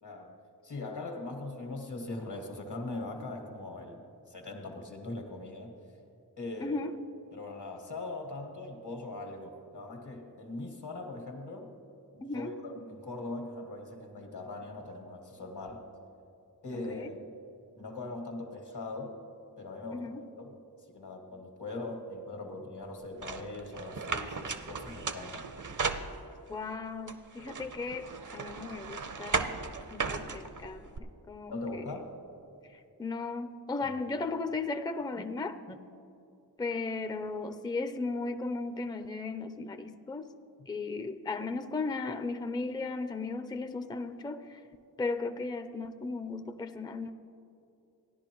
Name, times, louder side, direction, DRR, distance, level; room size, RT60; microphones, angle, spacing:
voice 1, 0.0-4.0 4.3-5.7 6.4-6.8 7.3-11.7 12.1-15.8 16.6-17.2 17.8-19.2 19.6-20.6 20.9-25.4 31.5-32.2 33.8-33.9, left 2 dB, 80° left, 3 dB, 1.6 m, -41 dB
voice 2, 6.6-6.9 12.2-12.5 16.7-17.1 19.9-20.2 26.5-29.5 29.9-31.8 33.0-35.8 36.6-40.3 40.7-44.6 45.0-47.1, left 3 dB, 10° left, 10 dB, 0.4 m, -36 dB
sound 1, 23.2-26.6 27.1-31.0, right 4 dB, 50° right, 0.7 m, -36 dB
16.0 x 10.5 x 3.0 m, 2.7 s
cardioid pair, 40°, 40 cm